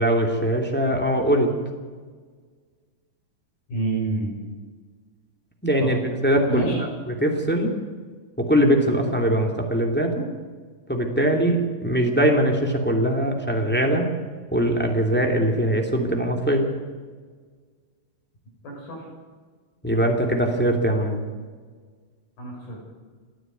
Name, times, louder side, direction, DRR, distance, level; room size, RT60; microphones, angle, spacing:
voice 1, 0.0-1.6 5.6-6.0 6.2-7.7 8.4-10.3 10.9-14.1 14.5-16.6 19.8-21.2, right 1 dB, 5° left, 1 dB, 2.0 m, -21 dB
voice 2, 3.7-4.3 5.8-5.9 6.5-6.8 18.6-19.1 22.4-22.8, right 2 dB, 70° left, 0 dB, 8.2 m, -28 dB
29.0 x 9.9 x 9.4 m, 1.5 s
omnidirectional pair, 4.4 m